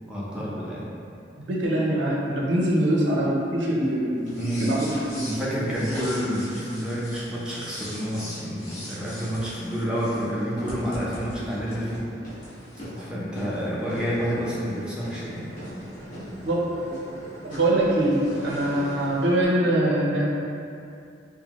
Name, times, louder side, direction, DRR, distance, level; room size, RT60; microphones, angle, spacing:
voice 1, 0.1-0.9 4.4-4.8 5.2-12.0 12.9-15.5, equal, 5° right, -8 dB, 0.7 m, -29 dB
voice 2, 1.4-5.3 16.4-16.9 17.4-20.3, right 1 dB, 80° right, -4 dB, 0.7 m, -23 dB
sound 1, 4.2-19.4, equal, 45° left, 1.5 m, -39 dB
5.4 x 2.2 x 3.0 m, 2.5 s
head